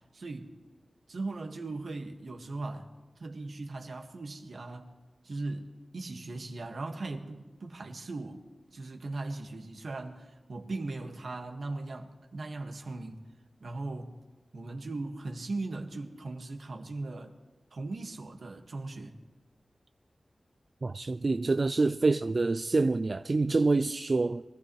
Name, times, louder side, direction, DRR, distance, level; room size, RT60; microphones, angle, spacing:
voice 1, 0.1-0.5 1.1-2.9 3.2-4.9 5.2-5.7 5.9-8.4 8.7-13.3 13.6-14.2 14.5-17.3 17.7-19.1, right 2 dB, 75° right, 1.7 m, -38 dB
voice 2, 20.8-24.4, right 3 dB, 55° right, 0.4 m, -26 dB
24.0 x 15.0 x 3.2 m
wide cardioid pair, 60°, 0 cm